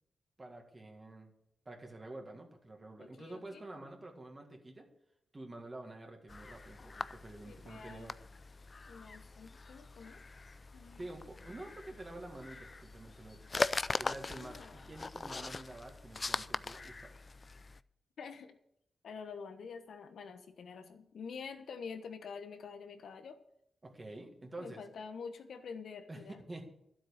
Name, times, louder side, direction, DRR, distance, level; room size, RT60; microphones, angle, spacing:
voice 1, 0.4-1.3 1.7-4.9 5.3-8.2 11.0-13.5 14.0-17.1 23.8-24.8 26.1-26.7, right 2 dB, 25° right, 2 dB, 2.0 m, -48 dB
voice 2, 3.0-3.6 7.4-8.1 8.9-10.2 10.7-11.1 14.2-14.8 18.2-18.6 19.0-23.4 24.6-26.4, left 5 dB, 80° left, 8 dB, 1.2 m, -47 dB
sound 1, 6.3-17.8, left 3 dB, 30° left, 0.4 m, -41 dB
12.5 x 7.9 x 6.5 m, 0.75 s
wide cardioid pair, 120°, 0 cm